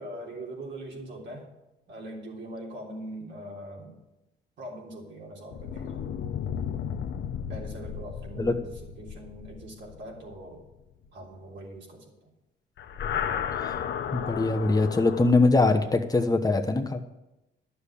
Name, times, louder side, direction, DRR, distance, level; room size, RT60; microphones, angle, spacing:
voice 1, 0.0-1.5 1.9-4.0 4.6-6.0 7.5-8.7 9.0-10.7 11.1-12.3, right 1 dB, 65° right, -1 dB, 3.6 m, -41 dB
sound 1, 5.5-11.1 12.8-15.3, left 8 dB, 65° left, 1.0 m, -34 dB
voice 2, 14.1-17.0, left 3 dB, 20° left, 4 dB, 1.0 m, -22 dB
11.0 x 7.0 x 8.5 m, 0.96 s
cardioid pair, 90°, 20 cm